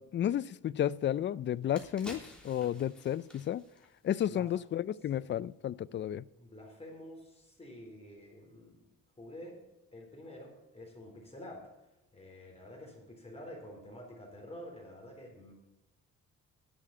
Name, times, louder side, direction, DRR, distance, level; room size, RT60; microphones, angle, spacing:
voice 1, 0.0-3.6 4.0-6.2, left 10 dB, 40° left, 0.4 m, -32 dB
sound 1, 1.5-4.8 5.1-5.3, left 1 dB, 5° left, 3.3 m, -52 dB
voice 2, 6.4-8.8 9.2-9.6 9.9-11.6 12.1-15.5, left 1 dB, 20° left, 4.0 m, -48 dB
11.0 x 7.5 x 7.5 m
cardioid pair, 90°, 30 cm